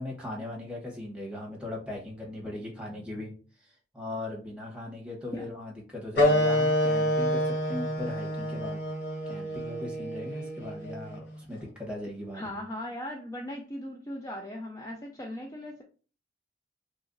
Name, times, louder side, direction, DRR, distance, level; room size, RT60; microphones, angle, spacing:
voice 1, 0.0-3.3 3.6-8.8 9.3-12.6, left 1 dB, 5° right, 1.0 m, -39 dB
sound 1, 6.2-11.3, equal, 70° left, 1.0 m, -28 dB
voice 2, 12.3-15.8, left 1 dB, 20° left, 0.3 m, -38 dB
2.9 x 2.6 x 3.7 m
head